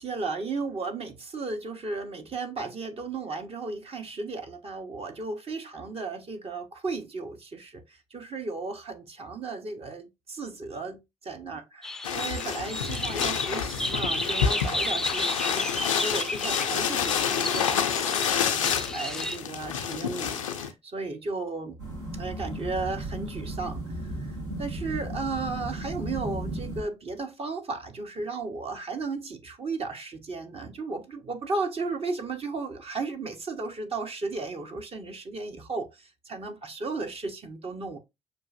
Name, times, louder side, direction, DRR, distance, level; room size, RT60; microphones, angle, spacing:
voice 1, 0.0-21.8 22.1-38.0, right 3 dB, 40° right, 0.8 m, -35 dB
sound 1, 11.8-19.4, left 1 dB, 5° left, 0.4 m, -33 dB
sound 2, 12.0-20.7, left 8 dB, 85° left, 0.4 m, -28 dB
sound 3, 21.8-26.8, right 1 dB, 80° right, 1.7 m, -35 dB
6.2 x 2.5 x 2.4 m
figure-of-eight pair, 45°, 16 cm